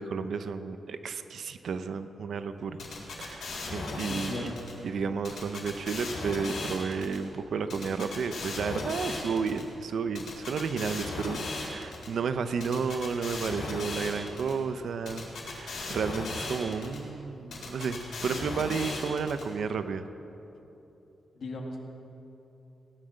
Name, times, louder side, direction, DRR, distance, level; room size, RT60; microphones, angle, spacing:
voice 1, 0.0-2.8 3.2-4.5 4.8-20.0, right 5 dB, 65° right, 10 dB, 0.7 m, -32 dB
sound 1, 2.8-4.7 5.2-7.2 7.7-9.6 10.2-12.1 12.6-14.5 15.1-17.0 17.5-19.4, left 3 dB, 70° left, 3.8 m, -37 dB
voice 2, 4.0-4.6 21.3-21.8, left 2 dB, 55° left, 1 dB, 2.0 m, -37 dB
17.5 x 11.0 x 6.5 m, 3.0 s
wide cardioid pair, 165°, 0 cm